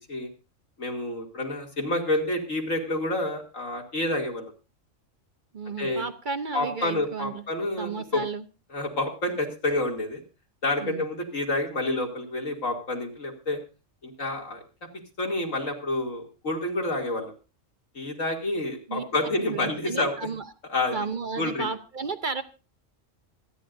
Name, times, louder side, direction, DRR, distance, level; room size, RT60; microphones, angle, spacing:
voice 1, 0.8-4.5 5.8-6.0 6.5-8.2 8.7-10.2 10.6-13.6 14.0-14.6 15.2-17.3 17.9-20.3 20.7-21.0 21.4-21.7, left 2 dB, 90° left, 1 dB, 3.1 m, -28 dB
voice 2, 5.5-7.4 7.8-8.4 10.8-11.1 18.9-19.0 19.5-20.5 20.9-22.4, right 4 dB, 45° right, 8 dB, 0.9 m, -33 dB
26.0 x 9.9 x 2.6 m, 0.33 s
omnidirectional pair, 1.3 m